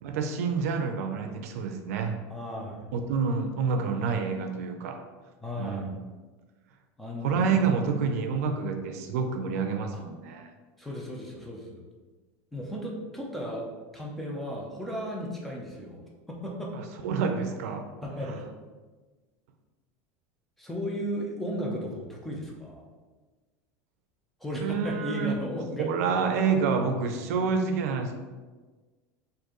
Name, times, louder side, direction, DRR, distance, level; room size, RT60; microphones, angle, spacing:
voice 1, 0.0-2.2 2.9-5.0 5.6-6.0 7.2-10.5 16.7-17.9 18.3-18.4 24.6-25.3 25.8-28.1, right 5 dB, 85° right, 5 dB, 0.4 m, -28 dB
voice 2, 2.3-2.9 5.4-5.9 7.0-8.2 10.8-11.8 12.5-13.6 13.9-16.0 16.3-16.7 18.0-18.4 20.6-22.9 24.4-25.9, equal, 5° left, -2 dB, 0.5 m, -35 dB
4.5 x 2.6 x 3.0 m, 1.3 s
supercardioid pair, 165°, 8 cm